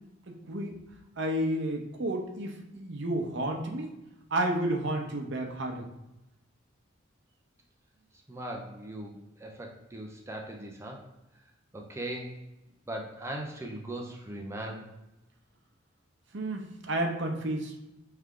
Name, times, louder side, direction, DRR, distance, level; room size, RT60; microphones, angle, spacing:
voice 1, 0.3-0.7 1.2-3.9 4.3-5.9 16.3-17.7, right 1 dB, 60° right, 3 dB, 0.7 m, -31 dB
voice 2, 8.3-11.0 11.7-12.4 12.9-14.9, right 1 dB, 15° right, 1 dB, 0.5 m, -39 dB
3.5 x 3.3 x 3.7 m, 0.96 s
head